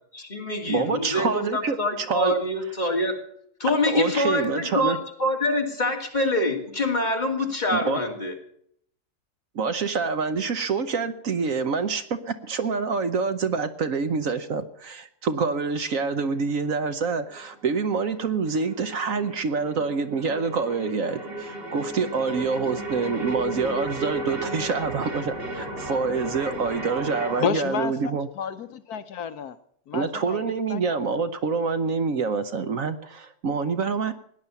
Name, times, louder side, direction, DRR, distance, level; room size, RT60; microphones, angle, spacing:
voice 1, 0.1-3.2 3.6-8.3, left 1 dB, 25° left, 2.7 m, -25 dB
voice 2, 0.7-1.8 2.1-2.3 3.9-5.0 7.7-8.0 9.5-28.3 29.9-34.1, right 5 dB, 60° right, 1.2 m, -26 dB
sound 1, 16.3-27.4, right 1 dB, 35° right, 2.4 m, -35 dB
voice 3, 27.4-28.1 28.4-29.5 29.9-30.4 30.7-30.8, left 7 dB, 70° left, 1.3 m, -30 dB
17.0 x 10.5 x 7.0 m
omnidirectional pair, 1.7 m